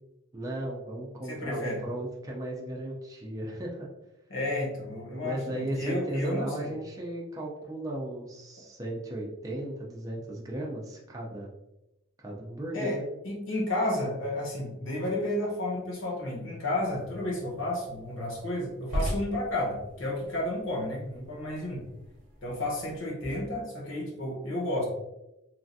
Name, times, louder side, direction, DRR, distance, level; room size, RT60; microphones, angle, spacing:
voice 1, 0.3-3.9 5.2-11.5 12.2-13.1, right 1 dB, 15° right, -3 dB, 0.4 m, -36 dB
voice 2, 1.2-1.8 4.3-6.7 12.7-21.8 22.4-24.9, left 1 dB, 65° left, -2 dB, 1.0 m, -32 dB
sound 1, 16.8-23.1, equal, 40° right, 0.7 m, -40 dB
3.2 x 2.4 x 2.6 m, 0.91 s
head